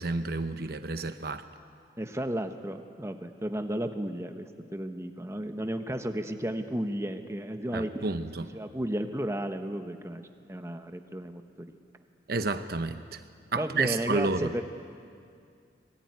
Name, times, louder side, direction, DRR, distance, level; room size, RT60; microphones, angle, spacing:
voice 1, 0.0-1.4 7.7-8.5 12.3-13.2 13.5-14.5, right 3 dB, 55° right, 9 dB, 0.9 m, -30 dB
voice 2, 2.0-8.1 8.5-11.7 13.5-14.6, right 1 dB, 15° right, 6 dB, 1.1 m, -33 dB
25.5 x 21.0 x 9.6 m, 2.3 s
head